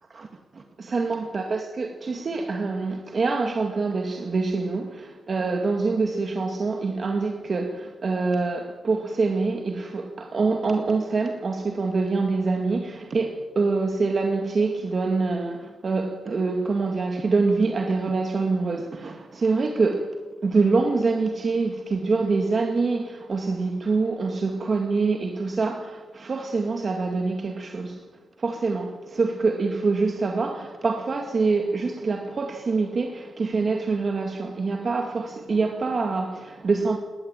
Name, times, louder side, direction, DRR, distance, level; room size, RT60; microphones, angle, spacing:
voice 1, 0.5-20.1 20.4-28.0 28.4-37.0, right 4 dB, 40° right, 2.1 m, -25 dB
20.0 x 20.0 x 9.1 m
wide cardioid pair, 150°, 0 cm